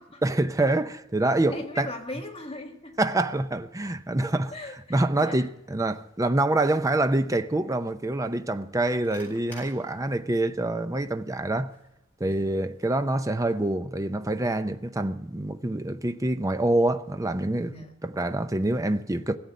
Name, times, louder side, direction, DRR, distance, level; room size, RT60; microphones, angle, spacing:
voice 1, 0.2-1.9 3.0-4.5 4.9-11.8 12.2-17.7 18.0-19.4, right 2 dB, 15° right, 0.6 m, -26 dB
voice 2, 1.5-3.0 4.5-5.5 12.2-12.5 17.7-18.0, left 2 dB, 30° left, 1.7 m, -39 dB
sound 1, 3.9-13.7, left 1 dB, 10° left, 7.5 m, -58 dB
16.5 x 8.0 x 9.8 m
head